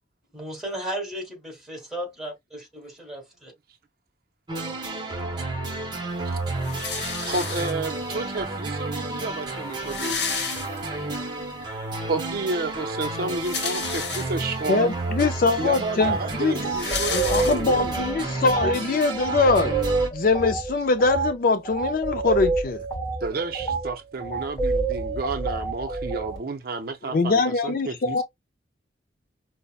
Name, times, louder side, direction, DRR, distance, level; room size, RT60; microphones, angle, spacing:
voice 1, 0.3-3.5, right 1 dB, ahead, 1.6 m, -35 dB
sound 1, 4.5-20.1, right 2 dB, 25° right, 0.8 m, -31 dB
sound 2, 6.6-8.1 8.9-9.0 9.2-9.3 9.6-11.2 11.6-11.7 13.1-14.6 15.3-15.4 15.6-18.0, left 6 dB, 65° left, 1.0 m, -32 dB
voice 2, 7.2-10.3 12.1-14.9 15.6-17.9 18.2-18.4 23.2-28.2, right 3 dB, 55° right, 0.5 m, -31 dB
voice 3, 14.7-16.6 17.1-19.7 20.1-22.8 27.0-28.2, left 3 dB, 50° left, 0.3 m, -22 dB
Beautiful Day, 16.0-16.2 16.6-26.4, right 4 dB, 20° left, 1.0 m, -28 dB
5.4 x 2.1 x 2.2 m
head